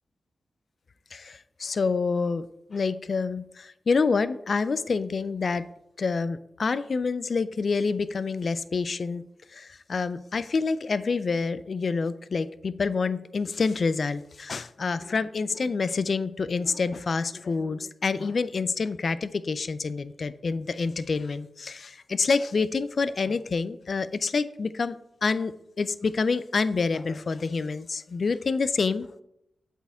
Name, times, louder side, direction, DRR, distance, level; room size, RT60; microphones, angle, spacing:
voice 1, 1.1-5.6 6.0-9.2 9.5-25.0 25.2-29.1, left 4 dB, 60° left, 15 dB, 0.3 m, -27 dB
7.8 x 4.3 x 3.5 m, 0.81 s
cardioid pair, 60°, 0 cm